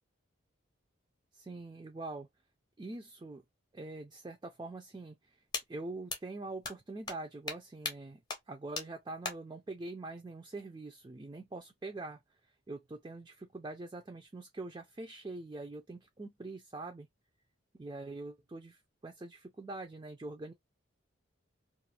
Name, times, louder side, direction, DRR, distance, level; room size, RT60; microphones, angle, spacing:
voice 1, 1.3-2.3 2.8-3.4 3.7-5.4 5.7-8.2 8.5-12.2 12.7-17.1 17.8-20.5, right 2 dB, 20° right, 0.3 m, -44 dB
sound 1, 5.5-5.6 6.1-6.2 6.6-6.7 7.1-7.2 7.5-7.6 7.8-7.9 8.3-8.4 8.8-8.9 9.2-9.3, left 3 dB, 20° left, 0.6 m, -36 dB
2.4 x 2.4 x 2.7 m
head